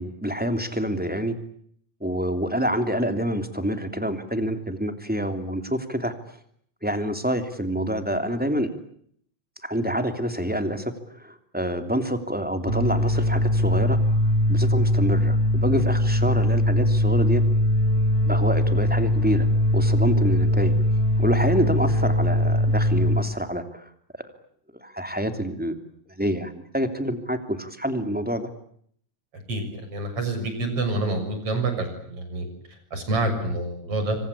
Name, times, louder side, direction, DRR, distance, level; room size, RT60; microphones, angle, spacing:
voice 1, 0.0-1.3 2.0-6.1 6.8-8.7 9.6-14.0 14.5-17.4 18.2-19.5 19.7-20.7 21.2-23.8 24.7-25.7 26.1-28.5, equal, 5° right, 8 dB, 2.6 m, -27 dB
sound 1, 12.7-23.2, left 1 dB, 40° left, 3.7 m, -21 dB
voice 2, 29.5-32.5 32.9-34.2, right 2 dB, 50° right, 7 dB, 7.7 m, -27 dB
27.0 x 25.5 x 8.5 m, 0.66 s
omnidirectional pair, 3.4 m